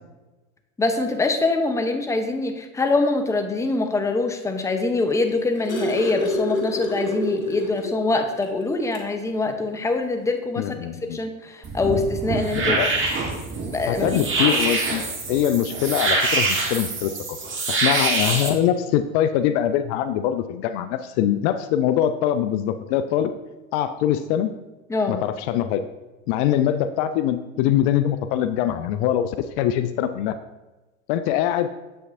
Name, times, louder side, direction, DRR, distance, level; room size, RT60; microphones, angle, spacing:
voice 1, 0.8-10.7 11.1-12.7 13.6-14.3 24.9-25.2, left 3 dB, 10° left, 5 dB, 0.6 m, -24 dB
sound 1, 5.1-8.0 8.4-8.5 8.9-9.1 10.2-10.3, left 1 dB, 90° left, 1.5 m, -27 dB
voice 2, 10.6-11.2 12.5-12.9 13.9-15.0 15.3-17.4 17.7-23.3 23.7-24.5 25.1-25.8 26.3-30.3 31.1-31.7, left 10 dB, 55° left, 10 dB, 0.5 m, -23 dB
sound 2, 11.6-18.5, right 3 dB, 30° right, 1.4 m, -25 dB
7.7 x 5.7 x 2.6 m, 1.1 s
hypercardioid pair, 85°, 40 cm